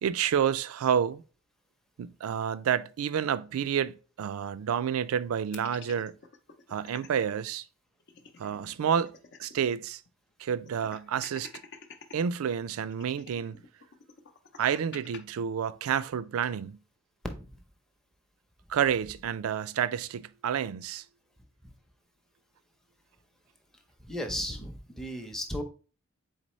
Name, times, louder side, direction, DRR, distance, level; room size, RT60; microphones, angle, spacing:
voice 1, 0.0-1.2 2.0-6.1 6.7-7.6 8.4-9.1 9.4-10.0 10.4-11.5 12.1-13.6 14.6-16.8 18.7-21.0, right 8 dB, 85° right, 0.3 m, -29 dB
sound 1, 5.5-7.3 7.6-7.7 8.0-9.8 10.1-10.2 10.7-12.2 12.9-15.2, left 5 dB, 55° left, 0.6 m, -49 dB
voice 2, 24.0-25.6, equal, ahead, 0.6 m, -35 dB
4.0 x 3.9 x 3.0 m
head